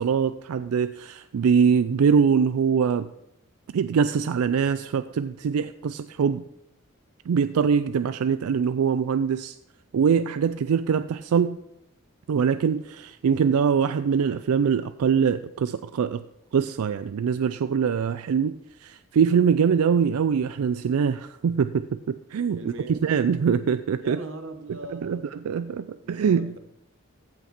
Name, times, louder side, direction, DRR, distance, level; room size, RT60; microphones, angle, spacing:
voice 1, 0.0-3.1 3.7-6.4 7.3-9.6 9.9-11.6 12.3-16.2 16.5-22.0 22.3-22.6 22.9-24.2 24.9-26.6, right 6 dB, 90° right, 0.4 m, -23 dB
voice 2, 22.6-23.0 24.0-25.4 26.0-26.6, right 2 dB, 65° right, 1.0 m, -39 dB
15.0 x 5.8 x 4.3 m
head